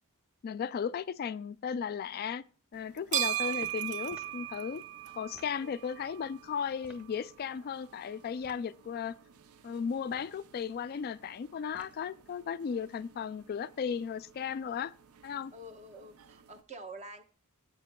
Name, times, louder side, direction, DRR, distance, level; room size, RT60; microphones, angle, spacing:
voice 1, 0.4-2.4 2.7-4.8 5.2-9.2 9.6-14.9 15.2-15.5, left 7 dB, 45° left, 0.3 m, -36 dB
sound 1, 2.7-16.6, right 13 dB, 75° right, 0.5 m, -41 dB
voice 2, 3.1-3.6 5.6-5.7 15.5-17.2, right 1 dB, 30° right, 1.0 m, -47 dB
sound 2, 4.1-4.4 5.3-5.6 6.8-7.1 8.4-8.7 10.0-10.4 11.7-12.1, equal, 5° right, 1.4 m, -55 dB
15.0 x 8.4 x 2.2 m
head